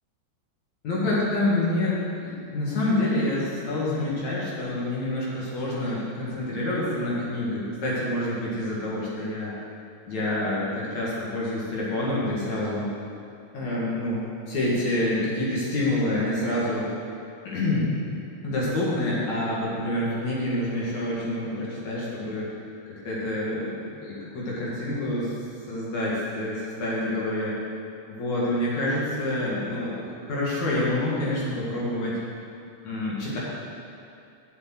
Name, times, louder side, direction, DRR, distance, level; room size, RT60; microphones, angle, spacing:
voice 1, 0.8-9.5 10.1-12.9 13.5-16.9 17.4-17.9 18.4-22.5 22.9-25.3 25.7-27.6 28.2-32.2 32.8-33.4, left 1 dB, 70° left, -6 dB, 3.3 m, -27 dB
8.2 x 7.1 x 7.8 m, 2.5 s
omnidirectional pair, 3.4 m